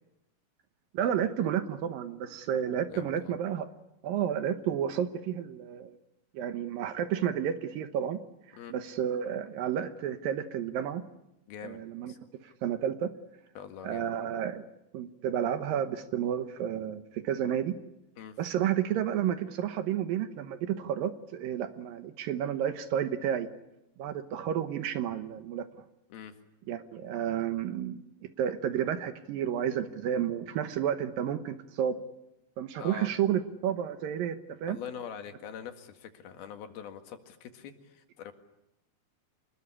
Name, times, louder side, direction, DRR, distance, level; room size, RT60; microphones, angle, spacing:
voice 1, 0.9-3.7 4.0-6.0 6.3-8.2 8.5-11.0 11.6-12.1 12.4-13.1 13.8-14.6 14.9-17.7 18.4-23.5 24.0-25.7 26.7-28.0 28.4-32.0 32.6-34.8, right 9 dB, 75° right, 9 dB, 2.8 m, -31 dB
voice 2, 2.5-3.4 8.5-8.7 11.5-12.2 13.6-14.0 18.2-18.4 26.1-26.4 32.8-33.1 34.7-38.3, left 8 dB, 85° left, 6 dB, 3.8 m, -44 dB
26.0 x 21.0 x 9.9 m, 0.88 s
omnidirectional pair, 4.2 m